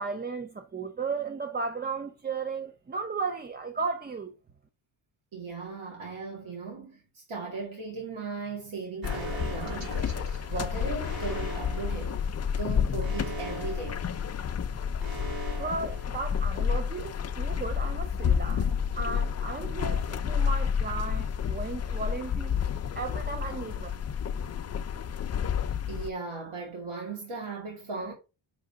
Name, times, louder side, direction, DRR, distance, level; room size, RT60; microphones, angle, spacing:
voice 1, 0.0-4.3 15.6-18.7 18.9-22.6 22.8-23.9, right 4 dB, 20° right, 0.4 m, -35 dB
voice 2, 5.3-12.2 12.5-14.1 25.9-28.1, right 4 dB, 80° right, 2.3 m, -37 dB
sound 1, 9.0-26.1, left 7 dB, 35° left, 0.5 m, -30 dB
Alarm, 9.0-16.8, right 3 dB, 45° right, 2.6 m, -42 dB
5.8 x 3.7 x 5.5 m
wide cardioid pair, 125°, 48 cm